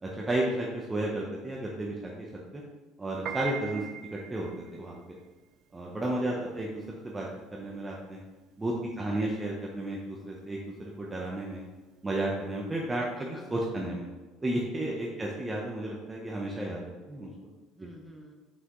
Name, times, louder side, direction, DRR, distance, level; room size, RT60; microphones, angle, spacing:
voice 1, 0.0-2.3 2.5-2.6 3.0-3.8 4.3-5.2 5.7-7.3 7.5-8.2 8.6-11.6 12.0-13.0 13.5-14.1 14.4-17.3, right 1 dB, 15° right, -3 dB, 0.8 m, -33 dB
Piano, 3.1-13.5, right 10 dB, 60° right, 0.4 m, -44 dB
voice 2, 6.1-6.7 9.0-9.2 13.0-13.4 14.9-15.3 17.7-18.3, right 1 dB, ahead, -1 dB, 1.2 m, -50 dB
5.9 x 5.8 x 3.1 m, 1.2 s
cardioid pair, 110°, 0 cm